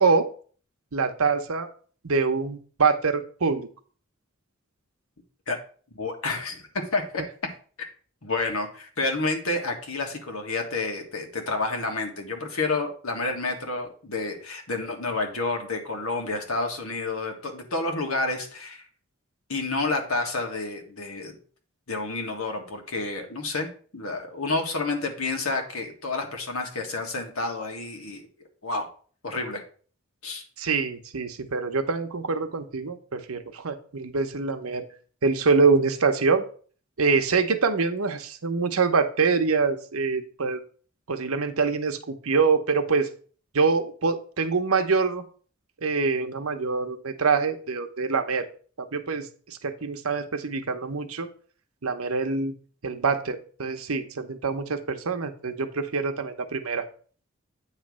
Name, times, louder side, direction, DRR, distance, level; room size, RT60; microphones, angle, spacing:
voice 1, 0.9-1.7 2.0-3.7 30.6-34.8 35.2-36.4 37.0-40.6 41.1-43.1 43.5-45.2 45.8-48.5 48.8-51.3 51.8-52.5 52.8-56.9, right 4 dB, 85° right, 7 dB, 0.9 m, -25 dB
voice 2, 5.9-6.6 6.9-7.2 7.8-7.9 8.2-18.8 19.5-21.4 21.9-28.2 28.6-28.9 29.2-29.6 30.2-30.4, left 3 dB, 80° left, 3 dB, 1.7 m, -29 dB
8.9 x 3.2 x 6.2 m, 0.43 s
head